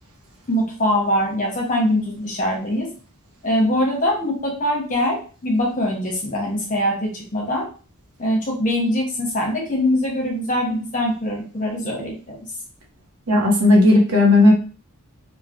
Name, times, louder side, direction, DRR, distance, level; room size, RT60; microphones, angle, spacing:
voice 1, 0.5-2.9 3.4-7.7 8.2-12.4, left 1 dB, 35° left, -1 dB, 0.9 m, -22 dB
voice 2, 13.3-14.5, left 2 dB, 80° right, 1 dB, 0.7 m, -14 dB
3.1 x 2.1 x 2.5 m, 0.38 s
head